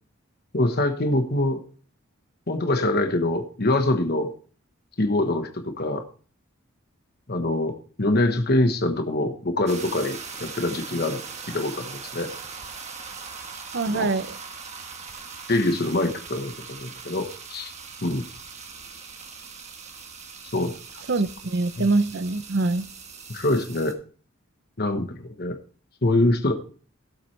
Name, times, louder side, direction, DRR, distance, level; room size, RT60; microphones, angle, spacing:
voice 1, 0.5-1.6 2.5-4.3 5.0-6.0 7.3-11.2 11.5-12.3 13.9-14.1 15.5-17.7 18.0-18.2 20.5-20.7 21.8-21.9 23.3-23.9 24.8-25.6 26.0-26.5, left 2 dB, 50° left, 6 dB, 1.2 m, -24 dB
sound 1, 9.7-23.9, right 5 dB, 35° right, 1.3 m, -40 dB
voice 2, 13.7-14.3 21.1-22.9, right 3 dB, 55° right, 14 dB, 0.7 m, -24 dB
17.0 x 7.5 x 3.3 m, 0.42 s
head